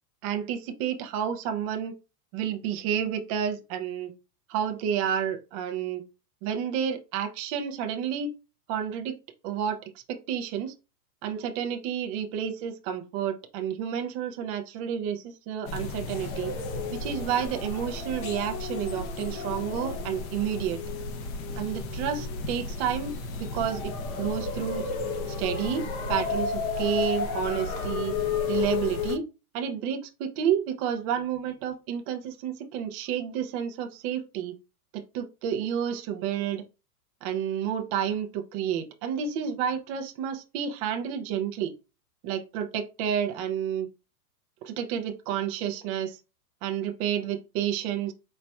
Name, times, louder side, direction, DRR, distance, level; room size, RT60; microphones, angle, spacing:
voice 1, 0.2-2.0 2.3-4.1 4.5-6.0 6.4-8.3 8.7-9.2 9.4-10.7 11.2-16.5 16.9-20.8 21.6-23.1 23.4-24.9 25.3-28.1 28.5-29.2 29.5-34.6 34.9-36.6 37.2-41.7 42.2-43.9 44.6-46.2 46.6-48.1, right 8 dB, 25° right, 0.4 m, -30 dB
sound 1, 15.7-29.2, left 4 dB, 30° left, 0.7 m, -32 dB
4.3 x 4.0 x 2.2 m
supercardioid pair, 145°, 47 cm